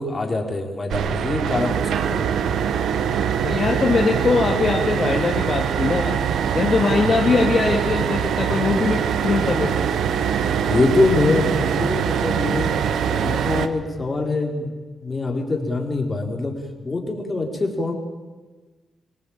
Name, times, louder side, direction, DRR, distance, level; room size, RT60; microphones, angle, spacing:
voice 1, 0.0-2.3 10.6-12.8 13.1-14.7 15.0-16.6 16.8-17.9, left 3 dB, 30° left, 2 dB, 4.3 m, -24 dB
sound 1, 0.9-13.7, right 8 dB, 85° right, 1.3 m, -23 dB
voice 2, 3.4-6.2 6.5-9.7, left 4 dB, 45° left, 1 dB, 2.2 m, -21 dB
24.5 x 18.0 x 8.9 m, 1.3 s
cardioid pair, 90°, 0 cm